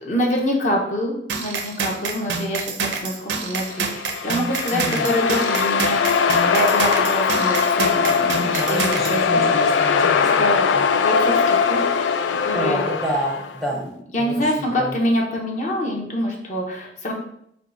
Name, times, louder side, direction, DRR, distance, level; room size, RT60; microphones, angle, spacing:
voice 1, 0.0-10.1 10.4-12.0 12.4-12.8 14.1-17.1, equal, 40° left, -1 dB, 0.8 m, -26 dB
sound 1, 1.3-9.2, right 5 dB, 85° right, 0.5 m, -27 dB
sound 2, 3.7-13.6, left 6 dB, 90° left, 0.3 m, -20 dB
voice 2, 4.7-5.1 8.3-10.4 10.7-10.9 12.5-13.9 14.2-14.3 14.8-14.9, equal, ahead, -3 dB, 0.6 m, -28 dB
4.6 x 2.3 x 3.9 m, 0.72 s
head